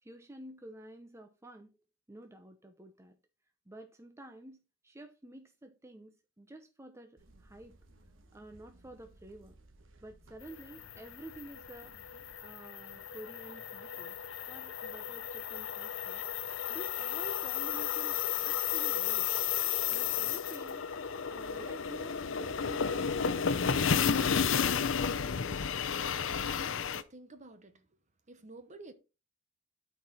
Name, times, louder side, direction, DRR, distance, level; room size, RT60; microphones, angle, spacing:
voice 1, 0.0-1.8 2.1-3.2 3.7-7.8 8.3-9.6 10.0-12.0 12.4-19.3 19.9-20.8 21.3-24.2, right 1 dB, 15° right, 0.7 m, -50 dB
sound 1, 7.2-12.3, right 2 dB, 80° right, 1.2 m, -60 dB
sound 2, 10.5-27.0, left 7 dB, 75° left, 0.6 m, -33 dB
voice 2, 26.5-27.9 28.3-28.9, right 2 dB, 40° right, 1.0 m, -51 dB
12.0 x 4.6 x 4.2 m
head